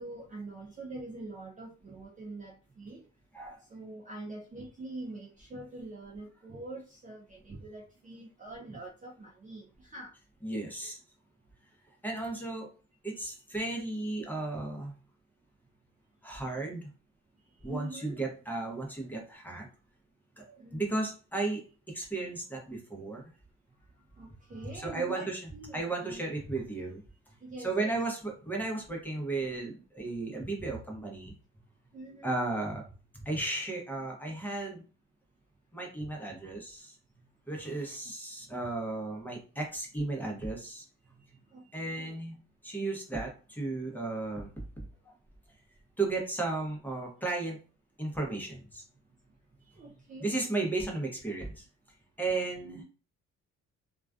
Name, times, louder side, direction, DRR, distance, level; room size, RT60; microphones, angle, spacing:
voice 1, 0.0-3.1 3.7-10.1 10.8-10.9 13.1-13.4 17.6-18.2 20.6-20.9 24.0-26.2 27.4-28.0 31.9-32.3 41.5-42.1 49.7-50.3 52.6-52.8, right 2 dB, 25° right, -1 dB, 0.4 m, -45 dB
voice 2, 10.4-11.0 12.0-12.7 13.0-14.9 16.2-16.9 17.6-19.7 20.4-23.2 24.6-25.4 25.7-27.0 27.6-31.3 32.2-32.8 33.1-34.8 35.7-37.0 37.5-40.8 41.7-45.1 46.0-47.6 48.0-48.8 50.2-51.7 52.2-52.8, right 2 dB, 5° left, 0 dB, 0.7 m, -34 dB
2.3 x 2.3 x 2.3 m, 0.37 s
cardioid pair, 90°, 30 cm